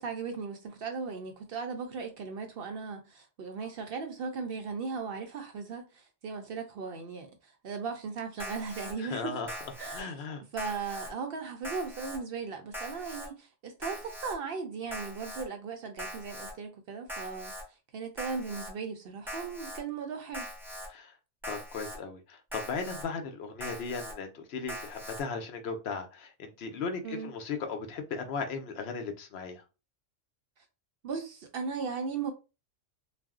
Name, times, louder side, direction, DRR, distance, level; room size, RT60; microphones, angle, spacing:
voice 1, 0.0-9.4 9.8-10.2 10.5-17.5 17.9-20.5 27.0-27.3 31.0-32.3, right 5 dB, 60° right, 0.7 m, -37 dB
Alarm, 8.4-8.9 9.5-10.0 10.6-11.1 11.6-12.2 12.7-13.3 13.8-14.4 14.9-15.4 16.0-16.5 17.1-17.6 18.2-18.7 19.3-19.8 20.3-20.9 21.4-22.0 22.5-23.0 23.6-24.1 24.7-25.2, equal, ahead, 0.5 m, -41 dB
voice 2, 9.0-9.6 9.9-10.4 20.9-21.1 21.5-29.6, left 4 dB, 65° left, 0.8 m, -37 dB
2.4 x 2.0 x 3.5 m
omnidirectional pair, 1.2 m